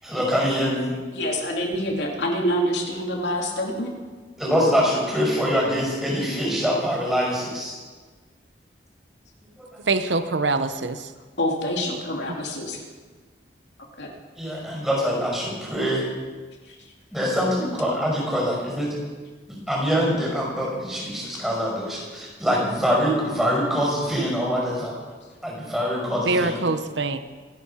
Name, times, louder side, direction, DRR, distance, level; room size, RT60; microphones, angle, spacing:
voice 1, 0.0-0.9 4.4-7.7 9.6-9.8 14.4-16.1 17.1-18.9 19.5-25.0 25.4-26.6, equal, 5° right, -3 dB, 5.6 m, -24 dB
voice 2, 1.1-3.9 6.3-6.4 11.4-12.9 14.0-14.1 16.7-16.9, equal, 75° left, 0 dB, 2.8 m, -26 dB
voice 3, 9.9-11.1 26.2-27.2, right 3 dB, 85° right, 10 dB, 0.9 m, -24 dB
26.0 x 9.5 x 5.7 m, 1.4 s
head